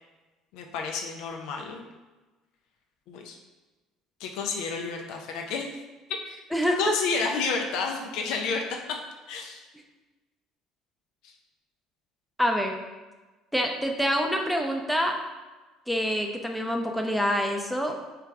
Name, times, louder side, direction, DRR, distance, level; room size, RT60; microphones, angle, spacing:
voice 1, 0.5-1.9 3.1-3.4 4.2-5.7 6.3-6.4 6.8-8.6 9.3-9.6 11.2-11.3, left 4 dB, 70° left, 2 dB, 0.5 m, -30 dB
voice 2, 6.5-6.9 12.4-12.8 13.5-15.2 15.9-18.0, equal, ahead, 2 dB, 0.6 m, -26 dB
3.3 x 3.3 x 3.6 m, 1.2 s
hypercardioid pair, 65°, 0 cm